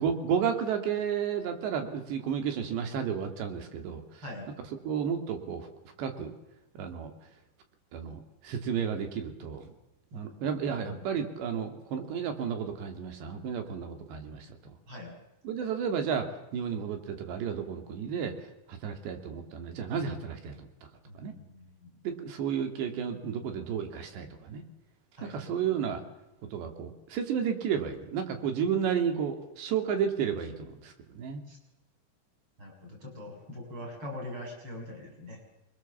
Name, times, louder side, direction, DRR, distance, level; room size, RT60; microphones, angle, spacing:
voice 1, 0.0-4.2 4.9-5.7 6.0-6.3 6.7-7.1 7.9-9.7 10.1-14.6 15.4-20.7 21.2-21.3 22.0-24.6 25.2-26.0 26.5-31.4, right 7 dB, 90° right, 6 dB, 4.8 m, -32 dB
voice 2, 10.1-11.0 14.9-15.1 21.0-21.9 25.2-25.4 31.5-31.6 32.6-35.4, left 1 dB, 30° right, 1 dB, 7.9 m, -43 dB
27.5 x 23.5 x 7.4 m, 0.93 s
omnidirectional pair, 4.8 m